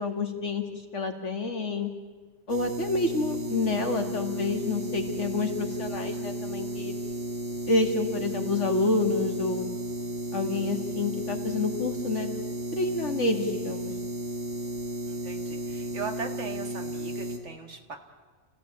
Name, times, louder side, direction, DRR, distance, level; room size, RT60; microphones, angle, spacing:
voice 1, 0.0-1.9 2.5-6.9 7.7-9.7 10.3-12.3 12.7-13.9, left 3 dB, 70° left, 4 dB, 2.7 m, -28 dB
sound 1, 2.5-17.4, right 1 dB, 90° right, 2.5 m, -34 dB
voice 2, 15.1-18.0, right 4 dB, 70° right, 5 dB, 2.3 m, -39 dB
29.0 x 16.0 x 8.7 m, 1.4 s
omnidirectional pair, 1.3 m